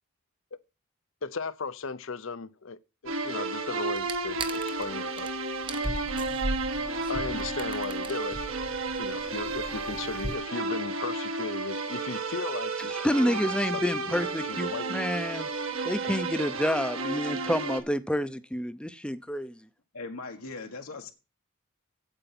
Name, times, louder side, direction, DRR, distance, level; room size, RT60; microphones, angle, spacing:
voice 1, 1.2-5.3 5.6-6.0 7.1-8.4 9.0-12.9 13.3-13.4 13.7-14.2 14.5-15.1, left 4 dB, 65° left, 0.6 m, -36 dB
sound 1, 3.1-17.8, right 3 dB, 75° right, 1.5 m, -32 dB
sound 2, 4.0-4.9 5.2-5.3 5.6-10.4, right 2 dB, 20° right, 0.9 m, -37 dB
voice 2, 12.9-15.5 15.8-19.6, equal, 5° left, 0.6 m, -29 dB
voice 3, 19.9-21.1, left 3 dB, 85° left, 1.5 m, -39 dB
8.9 x 8.2 x 5.9 m
head